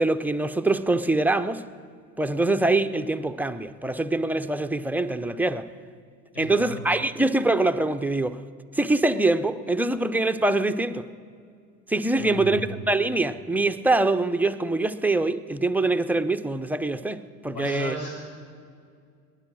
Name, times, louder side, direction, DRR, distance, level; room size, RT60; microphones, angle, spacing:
voice 1, 0.0-1.7 2.2-5.7 6.4-8.4 8.8-11.1 11.9-12.6 12.9-18.0, right 2 dB, 5° right, 8 dB, 0.5 m, -24 dB
voice 2, 6.3-6.8 12.1-12.6 17.5-18.4, equal, 80° left, 0 dB, 5.3 m, -35 dB
19.5 x 10.0 x 6.2 m, 2.2 s
hypercardioid pair, 75°, 47 cm